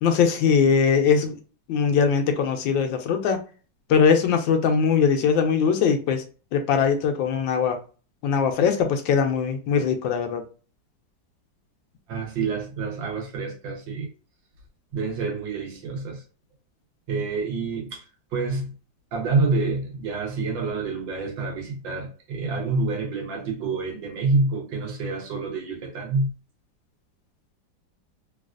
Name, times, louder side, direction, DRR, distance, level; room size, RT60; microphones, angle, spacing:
voice 1, 0.0-1.4 1.7-3.4 3.9-6.2 6.5-7.8 8.2-10.4, left 6 dB, 80° left, 1.4 m, -21 dB
voice 2, 12.1-14.1 14.9-16.2 17.1-18.0 18.3-18.7 19.1-26.3, right 3 dB, 75° right, 1.7 m, -27 dB
3.9 x 2.4 x 2.4 m
omnidirectional pair, 2.1 m